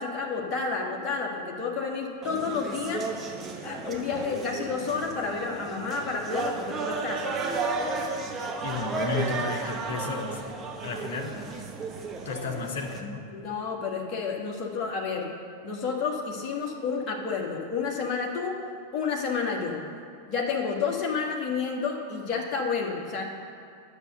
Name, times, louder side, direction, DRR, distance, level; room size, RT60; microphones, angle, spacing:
voice 1, 0.0-3.1 3.6-7.3 13.3-15.3 15.6-18.6 18.9-19.8 20.3-23.2, left 5 dB, 35° left, -1 dB, 1.7 m, -30 dB
sound 1, 2.2-13.0, right 4 dB, 25° right, 1.0 m, -33 dB
voice 2, 8.6-10.4 10.8-11.5 12.2-13.2, left 4 dB, 55° left, 2 dB, 1.1 m, -33 dB
9.4 x 6.6 x 6.7 m, 2.4 s
figure-of-eight pair, 90°, 0 cm